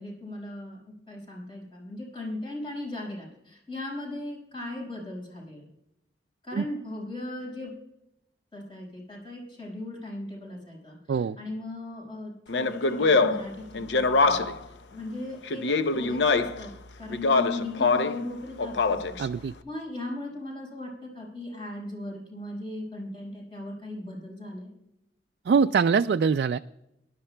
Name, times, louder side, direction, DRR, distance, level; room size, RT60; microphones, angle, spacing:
voice 1, 0.0-5.6 6.4-7.7 8.5-14.5 14.9-16.7 17.0-19.2 19.6-24.7, left 1 dB, 30° left, -3 dB, 5.2 m, -38 dB
Speech, 12.5-14.7 15.5-16.7 17.1-18.2 18.6-19.2, left 3 dB, 90° left, 0.7 m, -24 dB
voice 2, 19.2-19.5 25.5-26.6, right 6 dB, 70° right, 9 dB, 0.3 m, -23 dB
23.5 x 11.5 x 2.2 m, 0.83 s
head